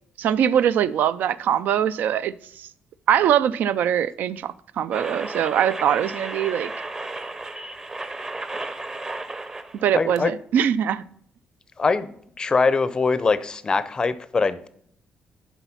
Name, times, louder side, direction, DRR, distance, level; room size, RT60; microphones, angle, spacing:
voice 1, 0.2-2.3 3.1-6.7 9.8-11.0, right 9 dB, 70° right, 0.4 m, -22 dB
sound 1, 4.9-9.9 10.2-10.3, right 2 dB, 20° right, 0.7 m, -33 dB
voice 2, 9.9-10.3 11.8-12.1 12.4-14.7, left 4 dB, 25° left, 0.5 m, -22 dB
11.0 x 4.1 x 5.7 m
cardioid pair, 145°, 3 cm